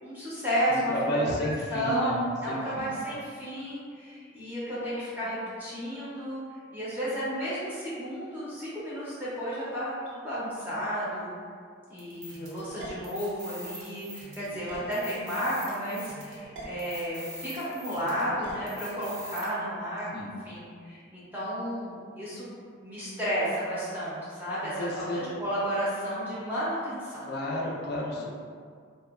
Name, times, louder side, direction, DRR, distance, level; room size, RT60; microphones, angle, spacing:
voice 1, 0.0-6.4 6.7-11.3 11.9-27.3, equal, 10° right, -10 dB, 0.5 m, -32 dB
voice 2, 0.7-2.2 2.5-2.9 20.1-20.3 24.8-25.3 27.2-28.4, equal, 55° left, -1 dB, 0.4 m, -31 dB
sound 1, 12.0-19.5, equal, 70° right, 0.6 m, -43 dB
2.7 x 2.2 x 2.3 m, 2.1 s
head